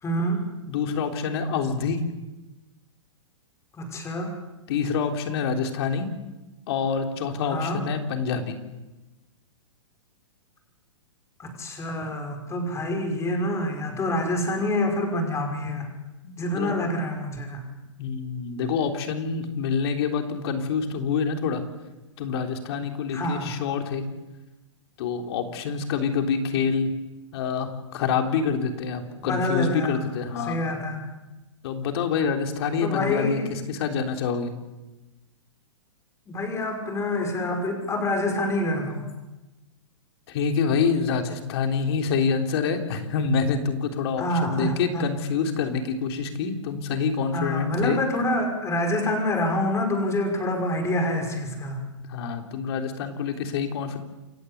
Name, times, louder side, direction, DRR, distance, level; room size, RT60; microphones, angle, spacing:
voice 1, 0.0-0.5 3.7-4.3 7.4-7.9 11.4-15.9 16.4-17.6 23.1-23.5 29.2-30.0 30.4-31.0 32.8-33.5 36.3-39.1 44.2-45.1 47.3-51.8, left 1 dB, 15° left, 3 dB, 5.9 m, -27 dB
voice 2, 0.7-2.1 4.7-6.1 6.7-8.6 16.2-16.8 18.0-21.6 22.2-24.0 25.0-26.9 27.3-30.7 31.6-34.5 40.3-48.0 52.1-54.0, left 5 dB, 55° left, 5 dB, 3.5 m, -26 dB
28.5 x 15.5 x 8.4 m, 1.1 s
hypercardioid pair, 120°, 16 cm